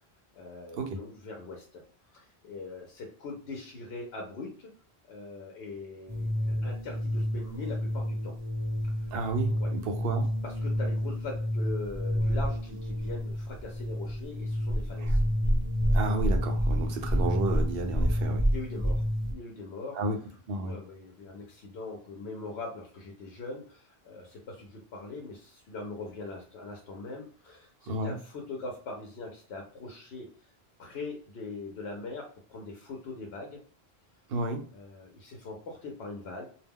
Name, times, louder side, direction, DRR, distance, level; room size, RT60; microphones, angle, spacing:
voice 1, 0.3-1.8 2.1-4.7 5.1-8.3 8.9-9.1 9.5-9.7 10.4-15.2 18.5-20.0 20.6-30.3 30.8-33.6 34.7-36.5, left 3 dB, 80° left, 1 dB, 0.9 m, -42 dB
sound 1, 6.1-19.3, equal, 10° right, 1.0 m, -29 dB
voice 2, 9.1-10.3 15.0-15.1 15.9-18.4 20.0-20.2 20.5-20.8 27.9-28.1 34.3-34.6, right 2 dB, 70° right, 4 dB, 0.8 m, -31 dB
2.3 x 2.1 x 3.5 m, 0.43 s
omnidirectional pair, 1.1 m